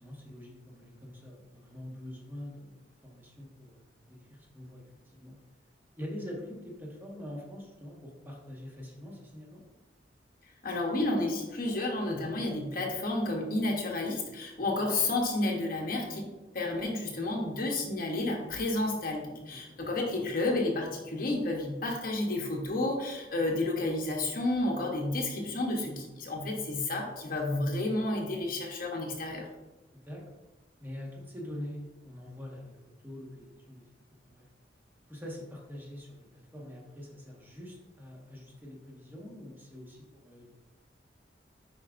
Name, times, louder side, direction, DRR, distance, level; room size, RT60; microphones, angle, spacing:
voice 1, 0.0-5.4 6.0-9.6 19.5-19.8 29.9-30.2 30.8-33.8 34.1-34.4 35.1-36.2 36.5-40.5, left 1 dB, 10° right, -3 dB, 1.4 m, -44 dB
voice 2, 10.6-16.3 16.5-29.5, left 2 dB, 55° left, 0 dB, 1.0 m, -31 dB
9.8 x 4.8 x 2.5 m, 1.1 s
head